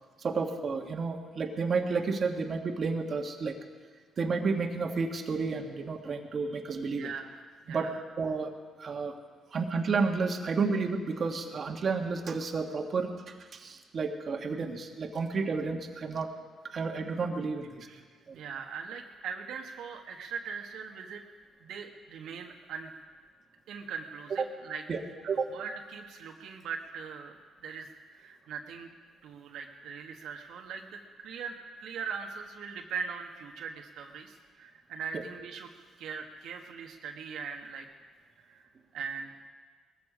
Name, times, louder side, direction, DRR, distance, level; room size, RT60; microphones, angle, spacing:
voice 1, 0.2-3.6 4.2-7.1 7.7-7.9 8.2-8.5 8.8-9.2 9.5-16.3 16.6-17.9 18.3-18.4 24.3-24.5 24.9-25.0 25.3-25.5, right 4 dB, 50° right, 3 dB, 1.6 m, -31 dB
voice 2, 7.0-7.9 17.8-18.0 18.3-21.2 21.6-22.9 23.7-24.8 25.2-28.9 29.2-35.7 36.0-37.9 38.4-39.5, right 6 dB, 80° right, 2 dB, 1.4 m, -41 dB
19.5 x 14.5 x 5.1 m, 1.5 s
cardioid pair, 90°, 0 cm